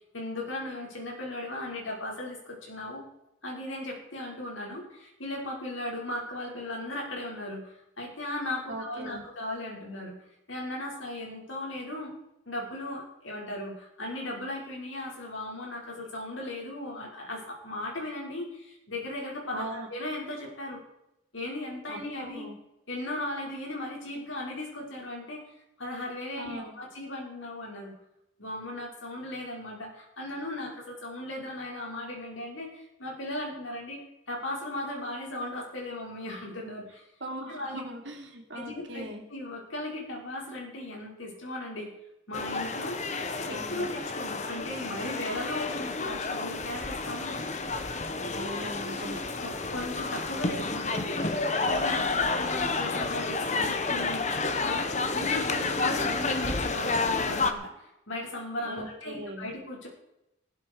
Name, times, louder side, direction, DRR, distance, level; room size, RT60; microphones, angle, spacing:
voice 1, 0.1-3.0 3.4-10.1 10.5-12.1 12.5-20.8 21.3-22.4 22.9-27.9 28.4-34.0 34.3-37.0 37.5-37.8 38.5-39.1 39.3-41.9 42.3-43.0 43.5-47.4 49.4-51.2 51.6-59.9, left 1 dB, 85° left, -1 dB, 5.7 m, -37 dB
voice 2, 8.7-9.2 19.5-19.9 21.9-22.5 26.4-26.7 37.2-39.2 43.4-43.9 48.3-49.2 55.8-56.2 58.6-59.5, right 1 dB, 70° right, 2 dB, 3.2 m, -39 dB
sound 1, 42.3-57.5, left 3 dB, 35° left, 1.2 m, -30 dB
15.0 x 13.0 x 4.9 m, 0.85 s
head